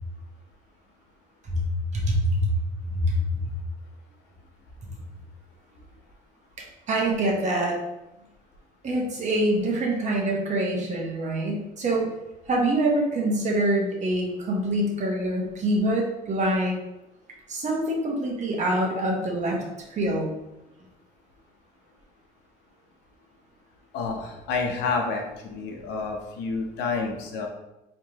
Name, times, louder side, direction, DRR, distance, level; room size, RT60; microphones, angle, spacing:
voice 1, 1.9-2.5 2.9-3.4 6.9-7.8 8.8-12.1 12.5-16.8 17.5-19.6 19.9-20.3, right 1 dB, 45° right, -1 dB, 1.2 m, -25 dB
voice 2, 23.9-27.5, left 4 dB, 85° left, 2 dB, 0.9 m, -29 dB
4.8 x 3.3 x 2.9 m, 0.95 s
cardioid pair, 110°, 17 cm